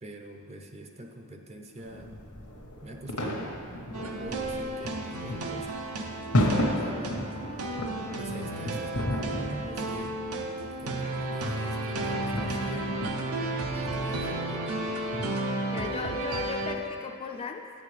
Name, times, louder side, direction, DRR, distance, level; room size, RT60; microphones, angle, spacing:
voice 1, 0.0-2.1 2.8-3.5 4.2-5.8 6.4-7.2 8.2-13.0 13.6-14.9, right 1 dB, 30° right, 4 dB, 0.5 m, -44 dB
sound 1, 1.8-16.8, left 1 dB, 90° left, 1.1 m, -34 dB
sound 2, 3.9-16.8, right 2 dB, 80° right, 0.7 m, -33 dB
voice 2, 15.7-17.7, left 4 dB, 25° left, 4 dB, 0.3 m, -37 dB
9.5 x 8.6 x 3.2 m, 2.6 s
head